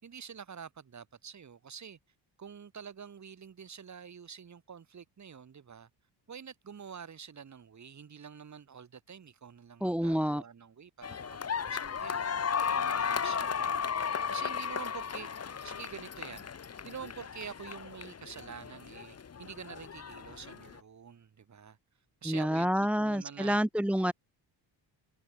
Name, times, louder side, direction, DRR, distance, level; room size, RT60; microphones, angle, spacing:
voice 1, 0.0-2.0 2.4-5.9 6.3-12.3 12.7-13.9 14.3-16.5 16.8-21.8 22.2-23.6, right 7 dB, 40° right, 5.4 m, -47 dB
voice 2, 9.8-10.4 22.3-24.1, equal, 5° right, 0.9 m, -28 dB
sound 1, 11.0-20.8, left 6 dB, 35° left, 2.4 m, -35 dB
cardioid pair, 150°, 45 cm